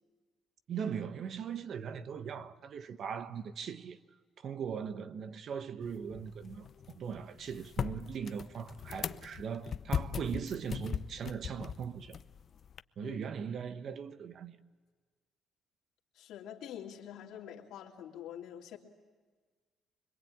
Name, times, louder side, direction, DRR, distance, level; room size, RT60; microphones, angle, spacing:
voice 1, 0.7-4.0 4.4-6.7 6.9-12.2 13.0-14.6, right 7 dB, 55° right, 1.1 m, -39 dB
sound 1, 5.8-12.8, left 7 dB, 50° left, 0.8 m, -40 dB
voice 2, 16.1-18.8, left 10 dB, 80° left, 2.9 m, -46 dB
26.0 x 22.0 x 8.7 m
cardioid pair, 105°, 0 cm